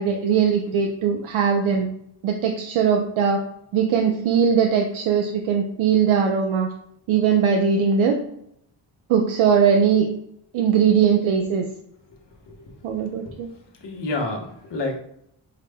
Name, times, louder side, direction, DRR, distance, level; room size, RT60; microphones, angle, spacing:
voice 1, 0.0-1.9 2.2-3.4 3.7-6.7 7.1-8.2 9.1-10.1 10.5-11.7 12.8-13.5, right 7 dB, 80° right, 3 dB, 0.6 m, -20 dB
voice 2, 12.5-13.0 13.2-13.4 13.8-15.0, left 2 dB, 60° left, 2 dB, 1.1 m, -30 dB
4.7 x 2.1 x 3.4 m, 0.75 s
cardioid pair, 85°, 47 cm